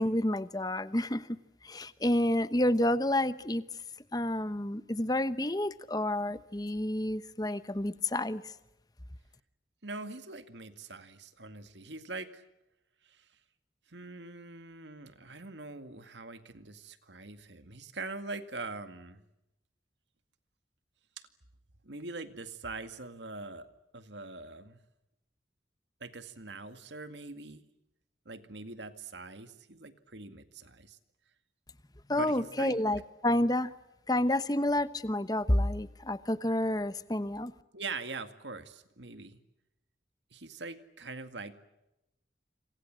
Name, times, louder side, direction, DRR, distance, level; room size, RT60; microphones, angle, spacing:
voice 1, 0.0-3.6 4.1-8.5 32.1-33.7 34.1-37.5, left 1 dB, 20° left, 13 dB, 1.0 m, -29 dB
voice 2, 9.8-12.4 13.0-13.3 13.9-19.2 21.2-21.3 21.8-23.7 23.9-24.8 26.0-27.6 28.3-31.0 32.1-32.8 37.7-39.4 40.3-41.6, right 3 dB, 80° right, 9 dB, 2.2 m, -43 dB
28.0 x 26.5 x 7.6 m, 0.92 s
head